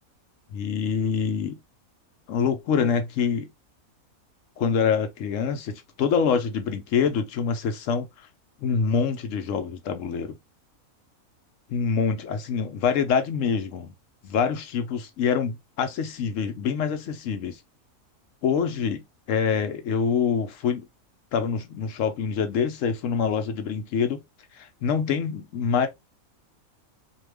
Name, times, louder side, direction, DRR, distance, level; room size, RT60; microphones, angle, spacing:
voice 1, 0.5-1.6 2.3-3.5 4.6-8.1 8.6-10.3 11.7-13.9 14.2-17.6 18.4-20.9 21.3-24.2 24.5-25.9, left 6 dB, 70° left, 0.9 m, -25 dB
2.8 x 2.3 x 3.2 m
omnidirectional pair, 1.5 m